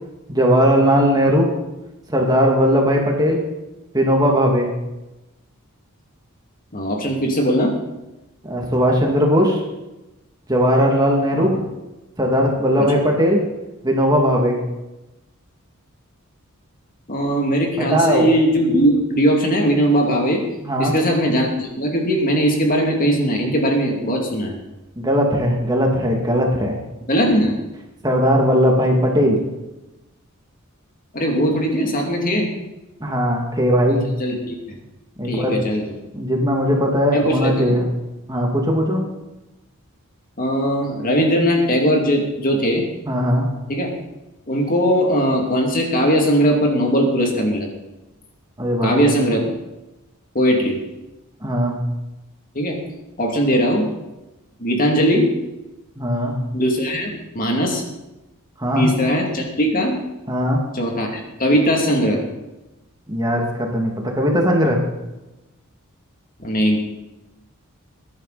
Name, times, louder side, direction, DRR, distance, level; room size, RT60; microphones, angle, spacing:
voice 1, 0.3-1.5 2.1-3.4 3.9-4.7 8.4-9.6 10.5-11.5 12.2-13.4 13.8-14.6 17.8-18.3 20.6-20.9 25.0-26.8 28.0-29.4 33.0-34.1 35.2-35.6 36.1-37.8 38.3-39.0 43.1-43.5 48.6-49.1 51.4-51.8 56.0-56.3 58.6-58.9 60.3-60.6 63.1-64.8, equal, 20° right, 0 dB, 2.3 m, -18 dB
voice 2, 6.7-7.7 11.4-11.5 12.8-12.9 17.1-20.4 20.8-24.6 27.1-27.6 31.1-32.5 34.2-34.5 35.2-35.9 37.1-37.8 40.4-42.8 43.7-43.9 44.5-47.7 48.8-49.5 50.3-50.8 52.5-52.8 53.2-53.9 54.6-55.3 56.5-57.8 58.8-59.9 60.7-62.2 66.4-66.8, equal, 40° left, 1 dB, 2.5 m, -19 dB
21.5 x 11.0 x 4.1 m, 1.0 s
head